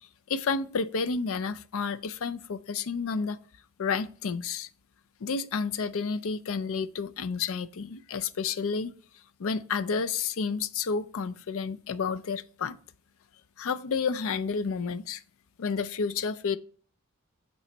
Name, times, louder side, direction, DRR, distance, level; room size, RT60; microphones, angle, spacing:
voice 1, 0.3-3.4 3.8-4.7 5.2-8.9 9.4-12.8 13.6-15.2 15.6-16.6, left 5 dB, 65° left, 0.4 m, -30 dB
8.4 x 3.1 x 4.4 m
head